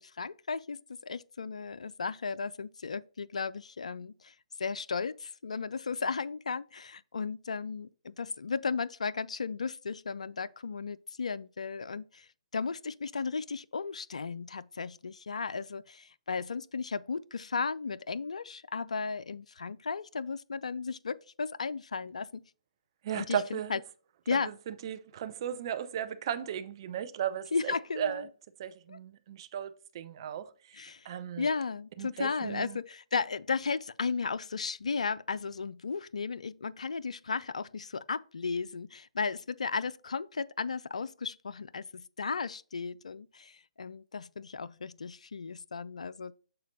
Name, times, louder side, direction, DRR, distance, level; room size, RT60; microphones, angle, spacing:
voice 1, 0.0-4.3 4.6-22.4 23.1-23.8 24.3-24.5 27.5-28.3 28.9-29.0 30.7-31.1 31.4-46.3, left 5 dB, 75° left, 0.3 m, -35 dB
voice 2, 23.0-23.8 24.7-28.3 28.6-29.7 29.9-30.8 31.0-31.5 32.0-32.8, right 9 dB, 40° right, 0.7 m, -36 dB
6.7 x 4.1 x 4.0 m
figure-of-eight pair, 135°, 4 cm